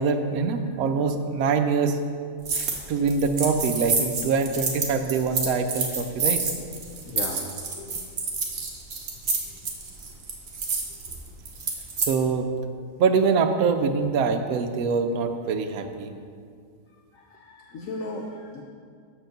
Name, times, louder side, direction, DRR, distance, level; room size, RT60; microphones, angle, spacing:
voice 1, 0.0-2.0 2.5-6.4 12.0-12.5 13.0-16.1, right 5 dB, 70° right, 7 dB, 1.0 m, -24 dB
sound 1, 2.4-2.8 3.1-12.1, right 4 dB, 45° right, 1.0 m, -28 dB
voice 2, 7.0-8.1 9.4-9.5 16.9-18.6, left 2 dB, 65° left, 1 dB, 0.9 m, -37 dB
6.7 x 4.7 x 6.5 m, 2.2 s
omnidirectional pair, 1.8 m